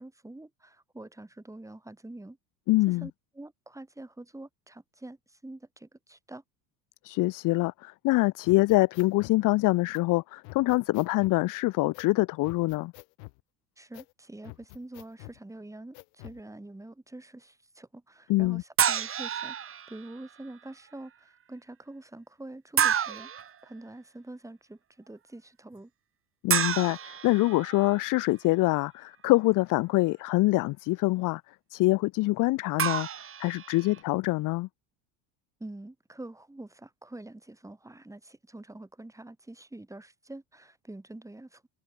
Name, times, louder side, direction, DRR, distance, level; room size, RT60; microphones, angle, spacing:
voice 1, 0.0-2.4 2.9-6.4 13.8-25.9 35.6-41.7, right 2 dB, 5° right, 2.2 m, -46 dB
voice 2, 2.7-3.1 7.0-12.9 18.3-18.6 26.4-31.4 31.7-33.1 33.4-34.7, left 20 dB, 45° left, 0.4 m, -25 dB
sound 1, 8.4-9.4 9.9-10.0 10.4-11.4 11.9-12.1 12.4-13.4 13.9-14.1 14.4-15.4 15.9-16.4, left 37 dB, 75° left, 4.7 m, -47 dB
sound 2, 18.8-20.1 22.8-23.5 26.5-28.1 32.8-34.0, right 8 dB, 25° right, 0.9 m, -29 dB
supercardioid pair, 85°, 49 cm